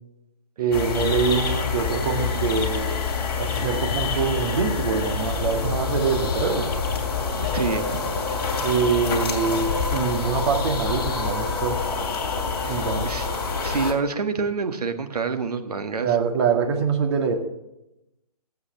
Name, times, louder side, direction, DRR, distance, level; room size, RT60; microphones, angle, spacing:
voice 1, 0.6-3.0 3.4-6.7 8.6-11.8 12.7-13.1 16.0-17.4, right 5 dB, 40° right, 3 dB, 2.0 m, -24 dB
sound 1, 0.7-13.9, left 5 dB, 35° left, 2.6 m, -26 dB
voice 2, 7.4-8.1 12.6-13.3 13.6-16.2, right 5 dB, 70° right, 6 dB, 1.6 m, -27 dB
21.5 x 8.2 x 3.5 m, 0.89 s
figure-of-eight pair, 135°, 21 cm